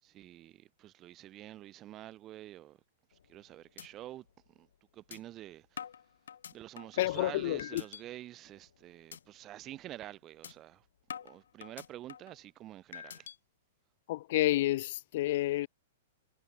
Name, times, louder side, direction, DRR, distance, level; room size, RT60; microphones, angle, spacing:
voice 1, 0.0-2.8 3.1-4.7 4.9-5.9 6.5-10.9 11.2-13.3, right 14 dB, 30° right, 1.8 m, -48 dB
sound 1, 3.1-3.4 3.8-3.9 4.3-4.4 5.1-5.2 5.8-7.0 7.6-8.0 8.5-8.7 9.1-9.2 9.6-9.8 10.4-10.5 11.1-12.4 12.9-13.4, left 8 dB, 65° left, 1.8 m, -46 dB
voice 2, 7.0-7.8 14.1-15.7, left 16 dB, 50° left, 0.6 m, -29 dB
figure-of-eight pair, 105°, 0 cm